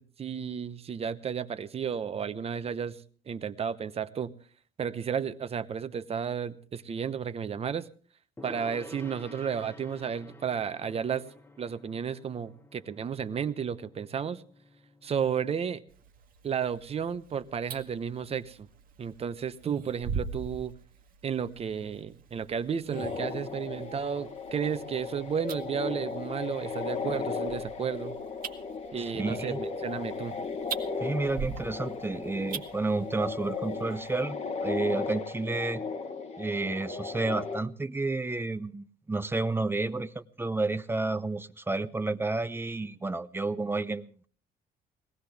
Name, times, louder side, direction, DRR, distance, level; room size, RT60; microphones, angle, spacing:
voice 1, 0.0-4.3 4.8-7.9 8.4-11.3 11.6-14.4 15.0-15.8 16.4-18.7 19.0-20.8 21.2-28.2 28.9-30.4, right 7 dB, 35° right, 0.9 m, -33 dB
Gong, 8.4-15.8, left 2 dB, 10° left, 1.0 m, -51 dB
sound 1, 15.9-34.2, right 6 dB, 55° right, 1.5 m, -43 dB
sound 2, 22.9-37.6, left 4 dB, 40° left, 1.3 m, -36 dB
voice 2, 29.0-29.6 31.0-35.8 36.4-44.3, right 3 dB, 15° right, 0.7 m, -31 dB
21.0 x 16.5 x 3.5 m
cardioid pair, 110°, 17 cm